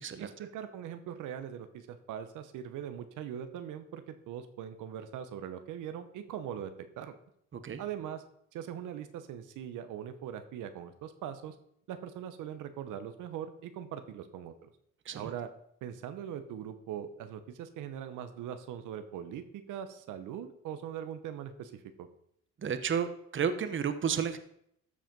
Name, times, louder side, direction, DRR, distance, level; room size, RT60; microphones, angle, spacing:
voice 1, 0.2-7.2 7.8-8.2 8.5-11.6 11.9-14.7 15.1-15.5 15.8-22.1, right 9 dB, 90° right, 10 dB, 0.9 m, -41 dB
voice 2, 22.6-24.4, right 7 dB, 40° right, 11 dB, 1.0 m, -32 dB
13.5 x 5.0 x 5.3 m, 0.72 s
cardioid pair, 90°, 30 cm